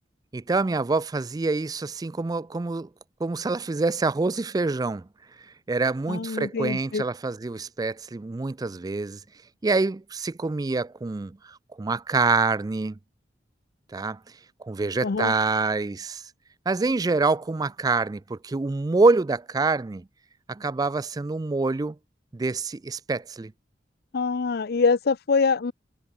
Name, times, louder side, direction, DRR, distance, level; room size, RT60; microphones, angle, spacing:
voice 1, 0.3-2.9 3.2-5.1 5.7-9.2 9.6-13.0 13.9-14.2 14.6-16.2 16.7-20.1 20.5-22.0 22.3-23.5, right 3 dB, 20° right, 0.3 m, -26 dB
voice 2, 6.1-7.0 15.0-15.3 24.1-25.7, left 4 dB, 60° left, 0.5 m, -24 dB
head